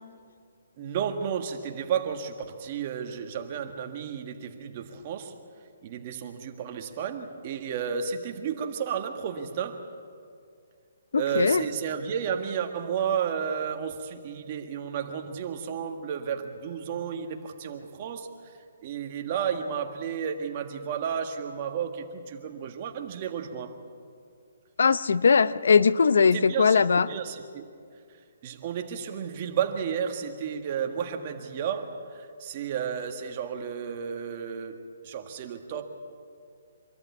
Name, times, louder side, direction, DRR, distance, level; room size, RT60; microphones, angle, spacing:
voice 1, 0.8-5.4 5.8-9.8 11.1-18.3 18.8-23.7 26.3-27.6 28.4-35.8, right 7 dB, 35° right, 4 dB, 1.7 m, -32 dB
voice 2, 11.1-11.6 24.8-27.1, left 5 dB, 80° left, 16 dB, 0.6 m, -20 dB
25.0 x 13.5 x 8.4 m, 2.3 s
hypercardioid pair, 160°, 0 cm